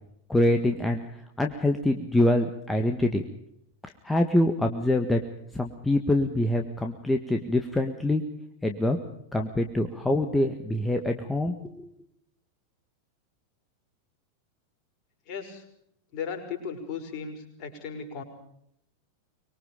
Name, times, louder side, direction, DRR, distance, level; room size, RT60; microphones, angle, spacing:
voice 1, 0.3-1.0 1.4-3.2 4.0-5.2 5.5-8.2 8.6-9.0 9.3-11.9, left 1 dB, 5° left, 4 dB, 1.7 m, -25 dB
voice 2, 15.3-15.6 16.1-18.2, left 6 dB, 40° left, 2 dB, 5.9 m, -36 dB
24.5 x 22.5 x 5.1 m, 0.75 s
figure-of-eight pair, 90°, 0 cm